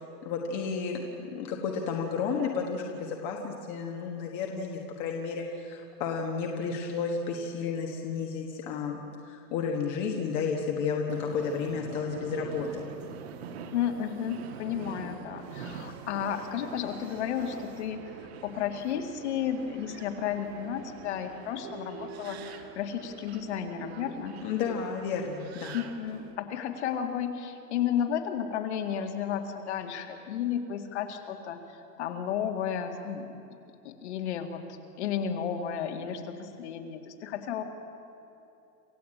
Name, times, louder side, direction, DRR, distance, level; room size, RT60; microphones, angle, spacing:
voice 1, 0.2-12.8 24.4-25.7, left 5 dB, 20° left, 1 dB, 1.3 m, -32 dB
Subway metro underground, 11.1-26.3, right 6 dB, 40° right, 1.6 m, -44 dB
voice 2, 13.7-18.0 18.4-24.4 25.7-33.3 33.8-34.6 35.0-37.6, left 8 dB, 45° left, 5 dB, 2.2 m, -33 dB
27.5 x 15.5 x 8.7 m, 2.9 s
hypercardioid pair, 170°, 48 cm